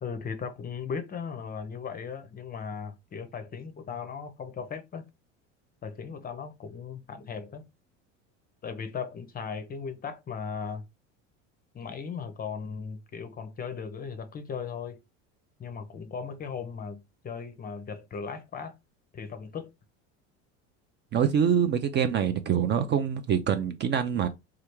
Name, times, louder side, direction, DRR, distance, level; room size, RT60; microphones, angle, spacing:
voice 1, 0.0-5.0 5.8-7.6 8.6-10.8 11.7-15.0 15.6-18.8 19.1-19.7, left 6 dB, 25° left, 0.6 m, -37 dB
voice 2, 21.1-24.3, right 8 dB, 30° right, 0.4 m, -25 dB
3.2 x 2.3 x 2.9 m
supercardioid pair, 95°, 36 cm